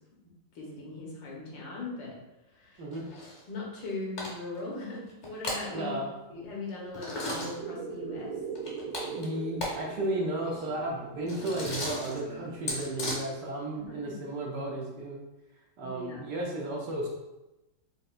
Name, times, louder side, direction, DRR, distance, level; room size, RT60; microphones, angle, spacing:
voice 1, 0.5-2.1 2.5-2.9 3.5-6.0 6.3-8.3 13.7-14.1 15.8-16.2, left 3 dB, 70° left, -3 dB, 1.6 m, -39 dB
sound 1, 2.9-3.4 3.8-3.9 4.2-4.6 5.1-5.6 6.9-7.5 8.5-9.8 10.0-10.1 10.4-13.1, left 1 dB, 45° left, 1.0 m, -36 dB
voice 2, 5.7-6.1 9.1-15.2 15.8-17.1, right 1 dB, 70° right, -3 dB, 1.2 m, -34 dB
sound 2, 7.6-12.7, right 5 dB, 85° right, 1.7 m, -41 dB
5.3 x 2.6 x 2.4 m, 0.99 s
omnidirectional pair, 2.2 m